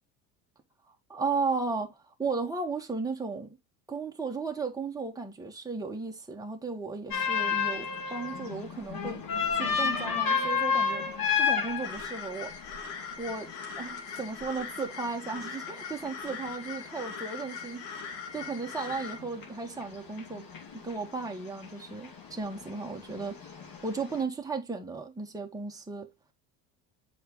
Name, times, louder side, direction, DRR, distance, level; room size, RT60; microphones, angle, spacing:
voice 1, 1.1-3.6 3.9-9.2 9.5-11.1 11.3-12.5 13.2-13.5 13.8-17.8 18.3-20.5 20.8-23.4 23.7-26.1, right 4 dB, 10° right, 1.7 m, -35 dB
sound 1, 7.1-24.2, left 6 dB, 45° left, 2.6 m, -33 dB
sound 2, 11.8-19.2, left 5 dB, 65° left, 2.2 m, -41 dB
7.8 x 5.2 x 3.2 m
supercardioid pair, 85°, 47 cm